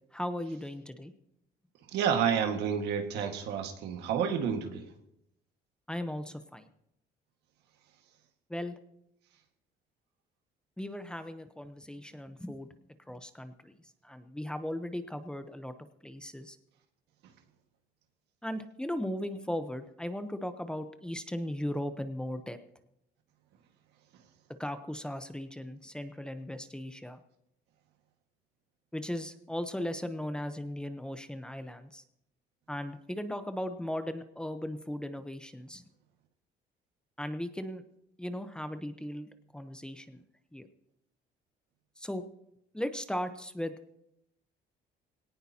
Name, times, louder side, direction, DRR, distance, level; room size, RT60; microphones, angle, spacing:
voice 1, 0.1-1.1 5.9-6.7 8.5-8.8 10.8-12.7 13.1-13.8 14.0-15.7 16.0-16.6 18.4-22.6 24.6-27.2 28.9-32.0 32.7-35.8 37.2-37.8 38.2-40.2 40.5-40.7 42.0-42.2 42.7-43.7, left 1 dB, 5° left, 9 dB, 0.9 m, -37 dB
voice 2, 1.9-4.8, right 7 dB, 85° right, 5 dB, 1.9 m, -29 dB
19.0 x 18.0 x 2.9 m, 0.80 s
cardioid pair, 110°, 17 cm